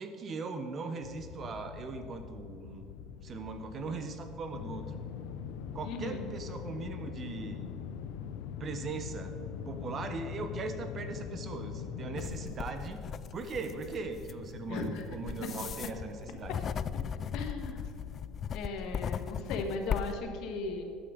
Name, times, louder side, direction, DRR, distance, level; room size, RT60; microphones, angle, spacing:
voice 1, 0.0-2.9 3.2-4.9 5.7-7.7 8.6-9.3 9.7-13.0 13.3-16.5, right 4 dB, 35° right, 8 dB, 1.1 m, -39 dB
sound 1, 1.0-18.6, left 7 dB, 85° left, 0.7 m, -43 dB
voice 2, 5.8-6.2 14.7-15.0 17.3-17.9 18.5-20.8, left 3 dB, 65° left, 4 dB, 1.7 m, -37 dB
sound 2, 12.2-20.2, left 7 dB, 35° left, 0.3 m, -38 dB
13.0 x 9.1 x 5.2 m, 2.6 s
cardioid pair, 135°, 0 cm